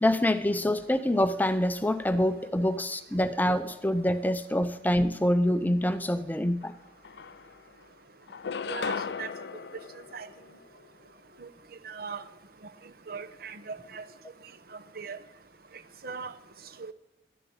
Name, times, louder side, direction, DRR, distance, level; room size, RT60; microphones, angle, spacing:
voice 1, 0.0-6.7, left 1 dB, 10° left, 0.5 m, -26 dB
sound 1, 6.6-6.7 7.0-7.8 8.3-10.9, left 6 dB, 65° left, 0.5 m, -37 dB
voice 2, 8.7-9.3 10.1-10.3 11.4-11.5 11.8-12.2 12.6-12.7 13.1-14.1 14.7-15.2 16.0-16.3 16.8-16.9, right 5 dB, 55° right, 0.9 m, -39 dB
11.0 x 11.0 x 8.6 m
head